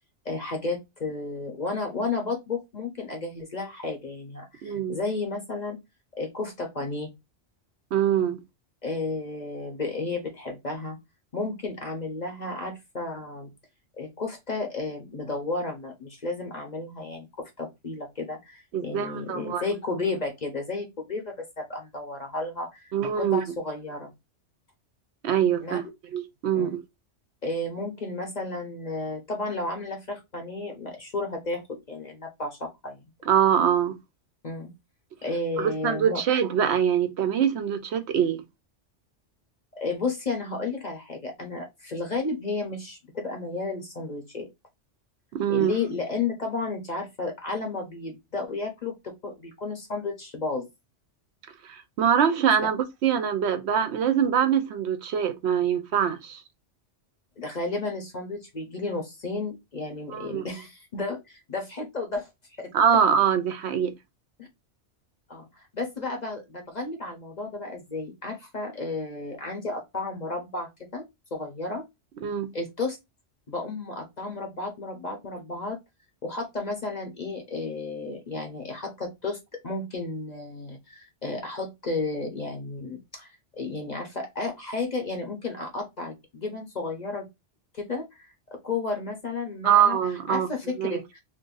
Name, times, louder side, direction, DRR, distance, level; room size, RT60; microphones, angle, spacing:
voice 1, 0.2-5.8 6.1-7.1 8.8-11.0 11.3-13.5 14.0-24.1 25.6-25.8 26.5-26.8 27.4-33.0 34.4-34.7 35.2-36.2 39.8-44.5 45.5-50.7 57.4-62.3 62.6-62.7 64.4-64.5 65.3-65.5 65.7-71.9 72.5-73.0 73.5-75.8 76.2-79.4 79.6-87.3 87.7-90.0 90.3-91.0, left 3 dB, 40° left, 0.8 m, -32 dB
voice 2, 4.6-5.0 7.9-8.4 18.7-19.6 22.9-23.4 25.2-25.8 26.1-26.8 33.3-34.0 35.6-38.4 45.3-45.7 51.6-56.4 60.1-60.4 62.7-63.9 72.2-72.5 89.6-90.5 90.8-91.0, right 8 dB, 70° right, 0.8 m, -24 dB
2.6 x 2.5 x 3.7 m
omnidirectional pair, 1.2 m